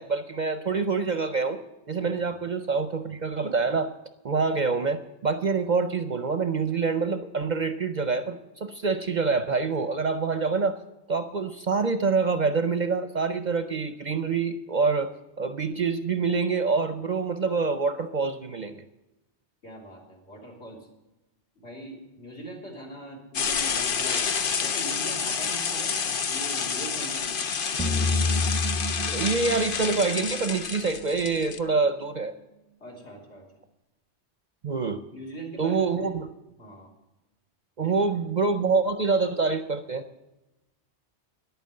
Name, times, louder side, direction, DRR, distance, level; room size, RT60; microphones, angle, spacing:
voice 1, 0.0-1.6 1.9-3.9 4.2-10.8 11.1-15.1 15.4-18.8 29.1-32.3 34.6-35.0 35.6-36.3 37.8-40.0, right 4 dB, 50° right, 10 dB, 0.7 m, -26 dB
voice 2, 19.6-20.9 21.6-24.3 24.6-26.0 26.3-27.3 32.8-33.5 35.1-36.1 36.6-36.9 37.8-37.9, right 1 dB, 70° left, 1 dB, 3.7 m, -41 dB
sound 1, 23.3-31.6, left 6 dB, 55° left, 0.9 m, -29 dB
sound 2, 27.8-31.0, left 2 dB, 5° left, 0.7 m, -29 dB
10.5 x 9.1 x 7.6 m, 0.98 s
omnidirectional pair, 1.2 m